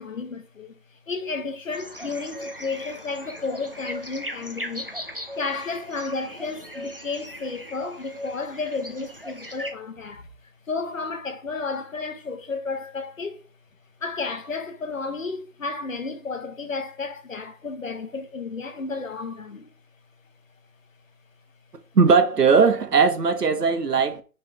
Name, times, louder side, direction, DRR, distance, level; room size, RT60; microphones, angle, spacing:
voice 1, 0.0-4.9 5.3-10.3 10.7-13.5 14.0-19.7, left 4 dB, 55° left, 1.2 m, -32 dB
sound 1, 1.7-9.7, equal, 35° right, 0.5 m, -38 dB
voice 2, 21.9-24.2, right 5 dB, 75° right, 1.3 m, -18 dB
5.8 x 3.7 x 4.8 m
hypercardioid pair, 180°, 48 cm